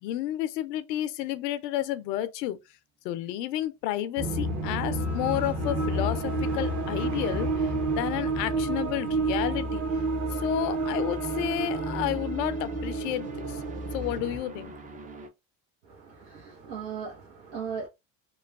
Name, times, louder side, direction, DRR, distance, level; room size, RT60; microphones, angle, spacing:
voice 1, 0.0-2.6 3.0-7.7 8.0-9.8 10.3-13.6 13.9-14.7, left 13 dB, 90° left, 0.6 m, -31 dB
sound 1, 4.2-14.4, right 2 dB, 40° right, 0.9 m, -30 dB
sound 2, 7.8-15.3, right 3 dB, 20° right, 0.3 m, -43 dB
voice 2, 15.8-17.9, right 6 dB, 90° right, 1.0 m, -38 dB
3.0 x 2.2 x 2.3 m
supercardioid pair, 90°, 48 cm